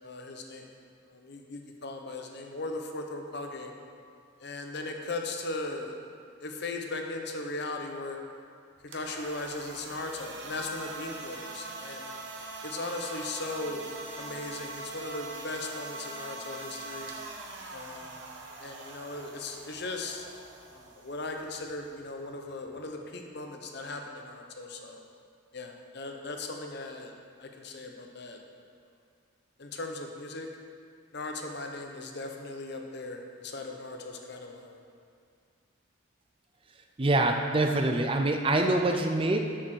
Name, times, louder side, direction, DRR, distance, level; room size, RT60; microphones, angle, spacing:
voice 1, 0.0-0.6 1.1-3.7 4.4-6.0 6.4-8.2 8.8-12.1 12.6-13.9 14.2-17.1 17.7-18.2 18.6-20.3 20.7-25.0 25.5-27.1 27.4-28.4 29.6-30.5 31.1-34.8, left 2 dB, 55° left, 3 dB, 0.9 m, -38 dB
sound 1, 8.8-22.8, right 3 dB, 60° right, 1.0 m, -43 dB
voice 2, 37.0-39.4, right 2 dB, 25° right, 4 dB, 0.5 m, -25 dB
7.6 x 6.6 x 6.3 m, 2.3 s
head